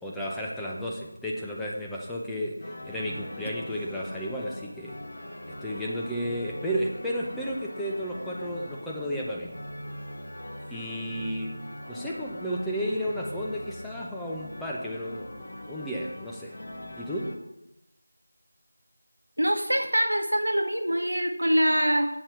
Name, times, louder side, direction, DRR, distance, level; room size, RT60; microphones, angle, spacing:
voice 1, 0.0-5.0 5.6-9.7 10.7-11.5 11.9-15.3 15.7-16.6 17.0-17.3, equal, 5° left, -5 dB, 0.6 m, -33 dB
sound 1, 2.6-17.3, left 1 dB, 55° left, 1.4 m, -41 dB
voice 2, 19.4-22.2, equal, 80° right, 6 dB, 1.0 m, -24 dB
7.7 x 4.3 x 6.8 m, 0.90 s
figure-of-eight pair, 170°, 0 cm